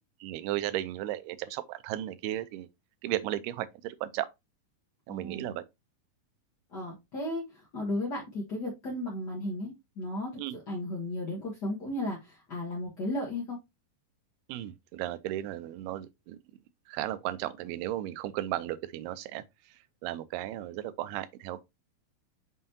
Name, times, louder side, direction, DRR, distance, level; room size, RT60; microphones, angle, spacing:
voice 1, 0.2-2.7 3.0-4.3 5.1-5.6 10.4-10.6 14.5-16.4 16.9-19.4 20.0-21.6, right 14 dB, 85° right, 2.6 m, -35 dB
voice 2, 5.1-5.6 6.7-10.3 10.7-13.6, left 1 dB, 65° left, 1.0 m, -35 dB
6.3 x 5.6 x 2.8 m
omnidirectional pair, 4.5 m